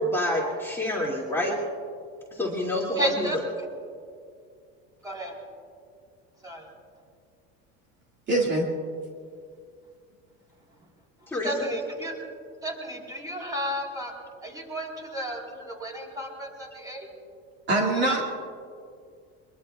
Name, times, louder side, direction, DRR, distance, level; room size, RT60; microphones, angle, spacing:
voice 1, 0.0-1.5 2.3-3.3 11.3-11.5, left 1 dB, 5° left, -4 dB, 2.5 m, -27 dB
voice 2, 3.0-3.4 5.0-5.3 6.4-6.7 11.4-12.1 12.6-14.1 14.4-17.1, equal, 10° right, -1 dB, 4.2 m, -32 dB
voice 3, 8.3-8.7 17.7-18.3, right 2 dB, 35° right, -2 dB, 2.2 m, -23 dB
23.0 x 23.0 x 2.4 m, 2.2 s
supercardioid pair, 130°, 31 cm